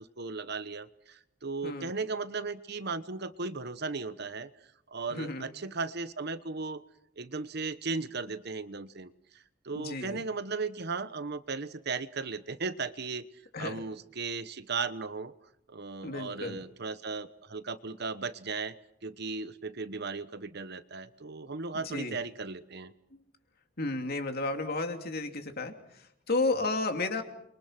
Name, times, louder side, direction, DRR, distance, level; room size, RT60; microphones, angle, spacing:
voice 1, 0.0-4.5 4.9-6.8 7.2-9.1 9.6-13.2 13.6-15.3 15.7-18.8 19.0-22.9, right 4 dB, 55° right, 13 dB, 1.1 m, -36 dB
voice 2, 5.1-5.5 9.7-10.2 13.5-13.8 16.0-16.6 21.7-22.2 23.1-23.2 23.8-27.2, left 2 dB, 50° left, 5 dB, 2.9 m, -33 dB
29.5 x 23.5 x 6.0 m, 0.76 s
head